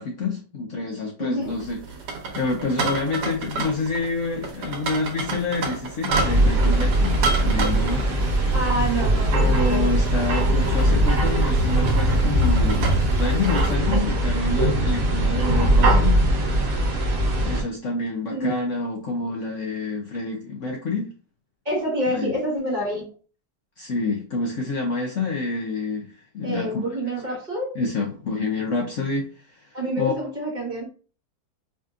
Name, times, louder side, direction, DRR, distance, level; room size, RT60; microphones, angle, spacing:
voice 1, 0.0-2.1 2.3-8.0 9.3-16.2 17.4-21.1 22.1-22.3 23.8-26.8 27.8-29.3 29.5-29.7 30.0-30.1, left 3 dB, 60° left, 0 dB, 0.9 m, -28 dB
voice 2, 1.2-1.5 8.5-9.9 10.2-10.4 14.9-15.0 18.3-18.5 19.0-19.1 21.6-23.0 26.4-27.7 29.7-30.9, right 1 dB, 30° right, -4 dB, 1.4 m, -27 dB
sound 1, 1.4-13.8, right 3 dB, 80° right, 1.3 m, -32 dB
sound 2, 6.1-17.6, right 1 dB, 60° right, 1.2 m, -20 dB
sound 3, 7.2-17.4, right 6 dB, 5° left, 1.2 m, -39 dB
4.8 x 2.7 x 2.4 m, 0.38 s
omnidirectional pair, 1.8 m